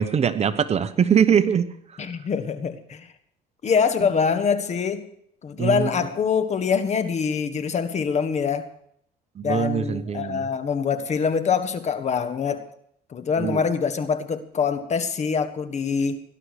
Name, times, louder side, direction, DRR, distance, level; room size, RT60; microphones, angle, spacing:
voice 1, 0.0-1.7 5.6-5.9 9.4-10.4 13.4-13.6, right 7 dB, 40° right, 1.1 m, -22 dB
voice 2, 2.0-3.1 3.6-5.1 5.4-8.7 9.4-12.6 13.1-16.2, left 6 dB, 40° left, 1.5 m, -24 dB
17.5 x 11.5 x 6.6 m
cardioid pair, 110°, 17 cm